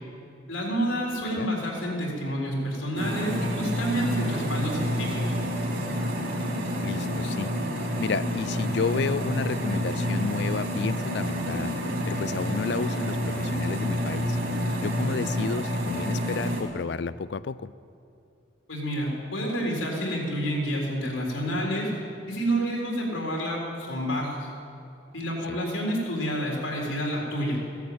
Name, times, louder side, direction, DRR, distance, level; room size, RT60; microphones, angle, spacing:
voice 1, 0.5-5.4 18.7-21.9 22.3-24.5 25.1-27.6, equal, 85° left, -2 dB, 4.1 m, -29 dB
sound 1, 3.0-16.6, equal, 50° right, 3.1 m, -28 dB
voice 2, 6.8-7.5 8.0-11.7 12.1-14.4 14.8-17.7, left 5 dB, 55° left, 18 dB, 0.4 m, -31 dB
15.5 x 10.5 x 8.8 m, 2.7 s
head